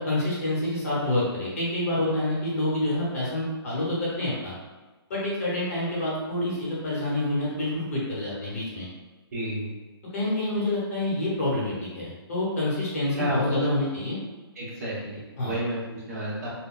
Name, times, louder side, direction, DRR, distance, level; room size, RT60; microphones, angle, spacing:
voice 1, 0.0-4.5 5.1-8.9 10.1-14.2 15.4-15.6, left 1 dB, 35° left, -6 dB, 0.9 m, -27 dB
voice 2, 9.3-9.7 13.2-13.7 14.6-16.5, right 1 dB, 35° right, -7 dB, 0.9 m, -30 dB
3.8 x 2.1 x 2.3 m, 1.2 s
hypercardioid pair, 170°, 14 cm